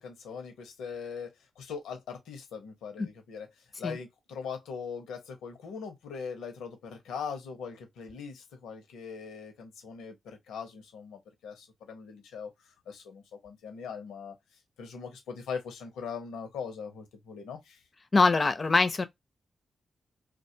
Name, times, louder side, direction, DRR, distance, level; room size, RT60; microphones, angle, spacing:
voice 1, 0.0-14.4 14.8-17.8, left 6 dB, 85° left, 0.7 m, -41 dB
voice 2, 18.1-19.1, left 3 dB, 40° left, 0.5 m, -23 dB
2.4 x 2.2 x 2.7 m
supercardioid pair, 45°, 0 cm